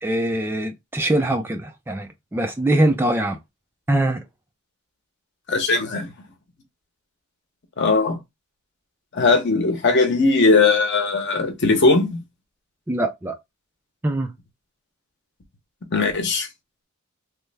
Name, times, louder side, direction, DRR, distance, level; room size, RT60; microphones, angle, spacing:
voice 1, 0.0-3.4 3.9-4.2 12.9-13.4 14.0-14.3, right 1 dB, 10° right, 0.3 m, -22 dB
voice 2, 5.5-6.1 7.8-8.2 9.1-12.2 15.9-16.5, left 3 dB, 55° left, 0.8 m, -19 dB
3.2 x 2.0 x 3.3 m
head